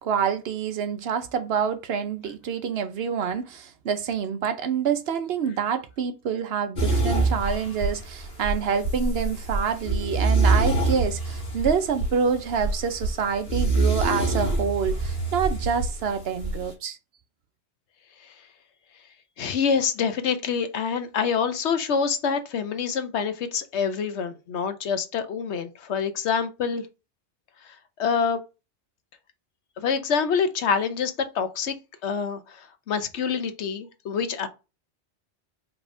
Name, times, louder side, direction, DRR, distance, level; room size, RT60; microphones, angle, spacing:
voice 1, 0.0-17.0, right 7 dB, 65° right, 0.9 m, -27 dB
sound 1, 6.8-16.7, right 3 dB, 50° left, 1.8 m, -26 dB
voice 2, 19.4-26.8 28.0-28.4 29.8-31.7 32.0-34.5, left 6 dB, 75° left, 1.0 m, -26 dB
5.1 x 3.5 x 2.6 m
omnidirectional pair, 1.2 m